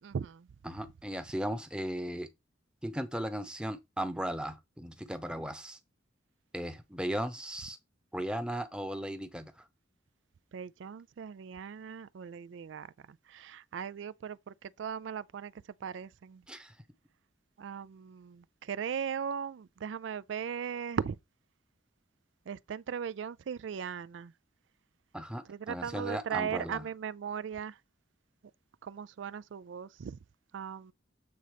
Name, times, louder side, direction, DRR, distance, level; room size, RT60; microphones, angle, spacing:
voice 1, 0.0-0.5 10.5-12.9 13.3-15.5 15.8-16.4 17.6-21.2 22.5-24.3 25.5-27.7 28.8-30.2 30.5-30.9, right 7 dB, 80° right, 0.4 m, -38 dB
voice 2, 0.6-2.3 2.8-5.8 6.5-7.8 8.1-9.6 16.5-16.7 25.1-26.9, equal, 5° right, 0.8 m, -36 dB
7.8 x 3.9 x 5.0 m
head